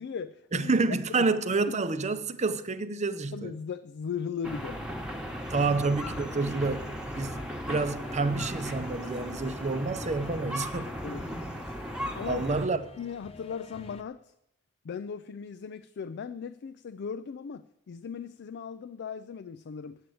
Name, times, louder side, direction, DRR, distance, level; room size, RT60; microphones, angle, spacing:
voice 1, 0.0-0.7 1.2-1.3 3.3-4.8 5.5-5.7 11.0-11.3 12.1-12.5 13.0-14.3 14.8-20.0, left 6 dB, 55° left, 0.4 m, -38 dB
voice 2, 0.5-3.5 5.5-10.9 12.3-12.8, right 3 dB, 35° right, 0.6 m, -29 dB
sound 1, 4.4-12.6, equal, 5° right, 1.1 m, -36 dB
sound 2, 8.0-14.0, left 2 dB, 30° left, 0.8 m, -50 dB
9.0 x 8.3 x 7.7 m
head